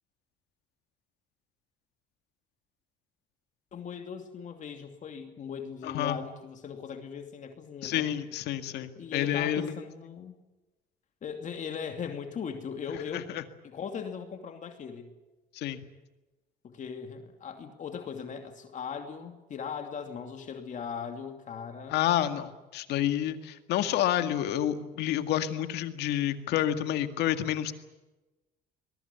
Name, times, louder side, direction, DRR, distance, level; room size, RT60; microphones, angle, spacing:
voice 1, 3.7-8.1 9.0-10.4 11.2-13.3 13.6-15.1 16.6-22.0, left 6 dB, 45° left, 6 dB, 2.6 m, -39 dB
voice 2, 5.8-6.2 7.8-9.7 13.3-13.4 15.5-15.8 21.9-27.7, left 11 dB, 80° left, 9 dB, 2.0 m, -29 dB
23.0 x 21.0 x 8.4 m, 1.1 s
cardioid pair, 110°, 17 cm